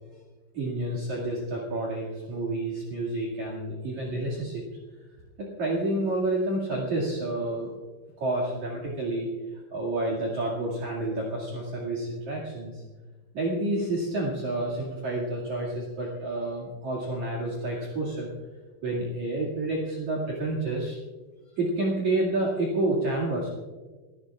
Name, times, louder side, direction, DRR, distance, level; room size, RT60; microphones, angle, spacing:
voice 1, 0.5-4.6 5.4-7.7 8.2-9.3 9.7-12.8 13.3-18.3 18.8-21.0 21.6-23.5, right 2 dB, 50° right, -2 dB, 3.1 m, -29 dB
27.5 x 15.5 x 2.4 m, 1.3 s
omnidirectional pair, 5.0 m